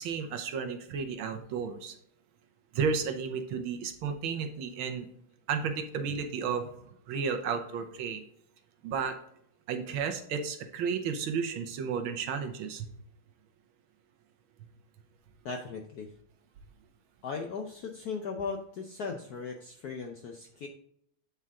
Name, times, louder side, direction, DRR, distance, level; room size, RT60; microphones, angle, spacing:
voice 1, 0.0-2.0 2.7-5.1 5.5-6.7 7.1-8.2 8.8-9.1 9.7-12.9, right 6 dB, 70° right, 6 dB, 1.6 m, -32 dB
voice 2, 15.4-16.1 17.2-20.7, left 5 dB, 70° left, 4 dB, 0.9 m, -37 dB
8.6 x 4.5 x 3.6 m, 0.70 s
omnidirectional pair, 2.4 m